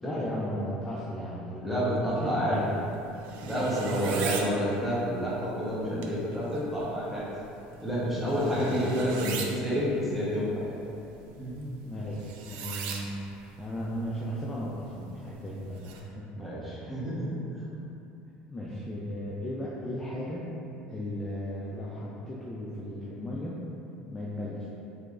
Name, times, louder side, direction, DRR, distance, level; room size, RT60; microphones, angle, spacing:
voice 1, 0.0-2.7 3.6-4.0 8.5-8.7 9.0-9.3 11.8-13.2 13.6-16.3 16.7-17.0 18.5-20.5 20.9-23.6 24.1-24.7, equal, 15° left, -7 dB, 0.4 m, -36 dB
voice 2, 1.6-2.6 3.4-7.3 7.8-10.7 11.4-11.6 16.3-17.3, equal, ahead, -9 dB, 0.9 m, -29 dB
sound 1, 2.5-16.0, right 5 dB, 70° right, 0.3 m, -42 dB
3.2 x 3.0 x 2.4 m, 2.9 s
supercardioid pair, 110°, 3 cm